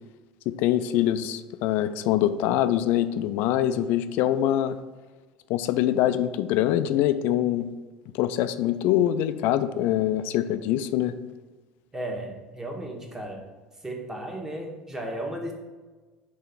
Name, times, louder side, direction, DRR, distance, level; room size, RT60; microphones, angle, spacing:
voice 1, 0.5-4.8 5.5-7.7 8.1-11.2, left 12 dB, 55° left, 12 dB, 0.3 m, -24 dB
voice 2, 11.9-13.4 13.8-15.5, right 1 dB, 15° right, 1 dB, 1.3 m, -34 dB
5.4 x 3.4 x 5.6 m, 1.3 s
figure-of-eight pair, 65°, 4 cm